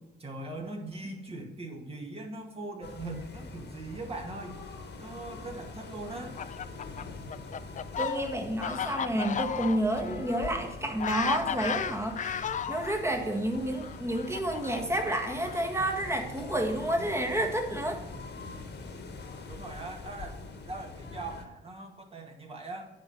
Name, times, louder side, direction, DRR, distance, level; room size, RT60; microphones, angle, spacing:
voice 1, 0.2-4.6 5.0-6.4 19.5-20.3 20.7-22.9, right 2 dB, 30° right, 2 dB, 2.0 m, -40 dB
sound 1, 2.8-21.4, left 3 dB, 60° left, 1.6 m, -44 dB
Fowl, 6.1-13.0 13.8-15.9, left 8 dB, 40° left, 0.5 m, -35 dB
voice 2, 8.0-18.0, right 1 dB, 15° right, 3 dB, 1.7 m, -30 dB
9.5 x 4.6 x 6.2 m, 1.0 s
cardioid pair, 90°, 20 cm